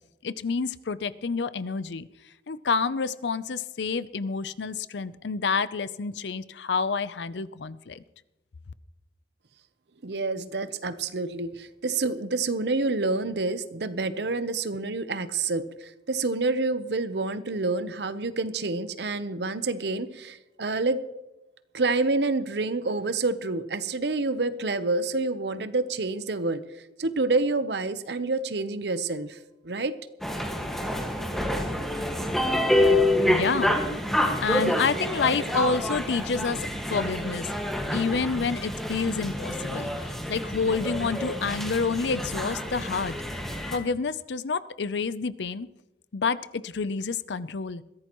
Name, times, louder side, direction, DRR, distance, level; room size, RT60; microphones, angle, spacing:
voice 1, 0.2-2.1 2.5-8.0 33.3-33.8 34.4-37.5 37.9-43.1 43.7-45.7 46.1-47.8, left 5 dB, 75° left, 16 dB, 0.6 m, -28 dB
voice 2, 10.0-21.0 21.7-26.6 27.0-29.4 29.6-29.9, right 3 dB, 70° right, 12 dB, 0.8 m, -28 dB
sound 1, 30.2-43.8, left 1 dB, ahead, 1.7 m, -27 dB
22.0 x 15.0 x 3.1 m, 0.98 s
head